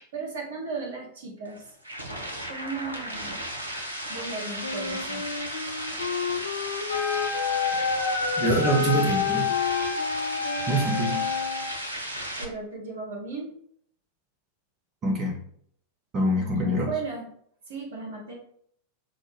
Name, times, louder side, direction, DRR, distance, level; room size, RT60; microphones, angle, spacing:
voice 1, 0.1-1.6 2.5-3.4 4.1-5.2 12.4-13.5 16.5-17.2 17.7-18.3, right 4 dB, 60° right, -1 dB, 1.1 m, -35 dB
sound 1, 1.4-12.4, right 1 dB, 80° right, 0.6 m, -35 dB
Wind instrument woodwind instrument, 4.6-11.7, left 6 dB, 70° left, 0.4 m, -32 dB
Wind instrument woodwind instrument 2, 6.9-11.7, left 5 dB, 50° left, 1.0 m, -29 dB
voice 2, 8.4-9.5 10.7-11.3 15.0-15.4 16.1-17.0, right 1 dB, 30° right, -1 dB, 0.8 m, -25 dB
6.1 x 2.1 x 3.3 m, 0.66 s
figure-of-eight pair, 90°, 0 cm